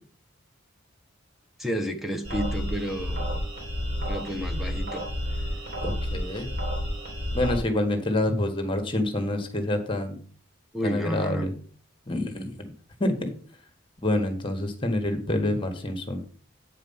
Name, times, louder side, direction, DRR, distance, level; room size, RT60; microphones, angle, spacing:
voice 1, 1.6-3.4 4.0-5.0 10.7-11.5, equal, ahead, 5 dB, 1.0 m, -31 dB
sound 1, 2.2-7.6, equal, 55° right, 3.3 m, -30 dB
voice 2, 5.8-6.5 7.3-10.1 10.8-11.5 12.1-12.7 13.0-13.3 14.0-16.2, left 1 dB, 25° left, 6 dB, 1.4 m, -27 dB
8.6 x 5.1 x 5.5 m, 0.44 s
head